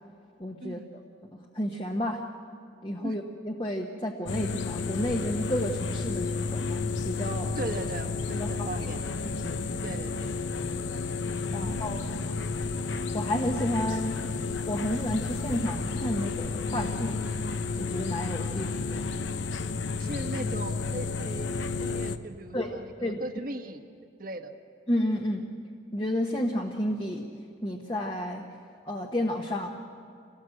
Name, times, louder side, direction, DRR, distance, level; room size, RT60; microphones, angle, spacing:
voice 1, 0.4-0.8 1.3-2.2 2.8-7.6 8.4-8.7 9.2-9.7 11.5-12.3 13.1-14.2 14.6-17.2 17.7-19.0 22.5-22.7 23.0-23.2 24.9-25.5 25.9-27.2 27.6-28.4 28.8-29.8, left 1 dB, 25° left, 2 dB, 1.1 m, -31 dB
sound 1, 4.3-22.2, left 4 dB, 80° left, 0.9 m, -31 dB
voice 2, 7.6-9.0 9.8-10.3 11.5-11.8 20.0-21.5 21.8-23.8 24.2-24.5, right 1 dB, 50° right, 6 dB, 1.3 m, -38 dB
27.0 x 18.0 x 7.8 m, 2.4 s
head